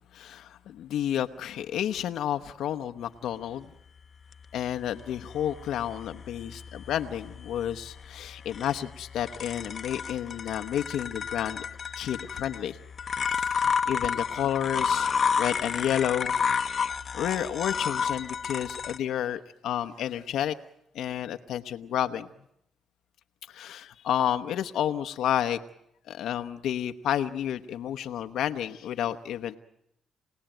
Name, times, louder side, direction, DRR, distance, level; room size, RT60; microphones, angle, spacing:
voice 1, 0.1-3.7 4.5-11.6 12.0-12.8 13.3-16.4 17.1-20.5 20.9-22.3 23.5-25.6 26.1-29.6, left 10 dB, 80° left, 8 dB, 1.0 m, -31 dB
sound 1, 4.3-19.0, left 6 dB, 45° left, 1.1 m, -31 dB
28.0 x 18.0 x 9.1 m, 0.77 s
cardioid pair, 90°, 0 cm